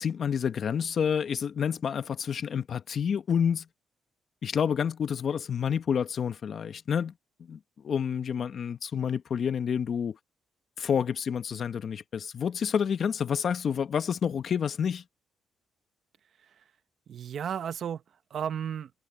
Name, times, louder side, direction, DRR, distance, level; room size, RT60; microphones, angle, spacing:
voice 1, 0.0-3.7 4.4-7.1 7.5-10.2 10.8-15.0, left 7 dB, 55° left, 1.3 m, -29 dB
voice 2, 17.1-18.9, right 8 dB, 60° right, 1.2 m, -34 dB
cardioid pair, 90°, 0 cm